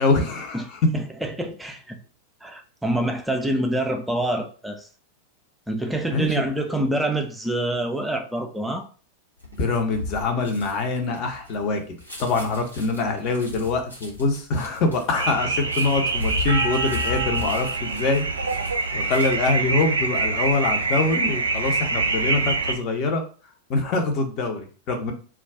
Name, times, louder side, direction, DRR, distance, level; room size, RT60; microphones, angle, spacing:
voice 1, 0.0-0.8 6.1-6.5 9.6-18.3 18.6-23.2 23.7-25.1, left 3 dB, 40° left, 0.7 m, -24 dB
voice 2, 0.9-2.0 2.4-4.9 5.7-8.9, right 1 dB, 5° right, 0.4 m, -26 dB
sound 1, 9.4-19.6 19.9-20.3, left 3 dB, 85° left, 0.8 m, -36 dB
sound 2, 15.1-22.7, right 3 dB, 75° right, 0.4 m, -25 dB
2.3 x 2.3 x 3.4 m
figure-of-eight pair, 90°, 0 cm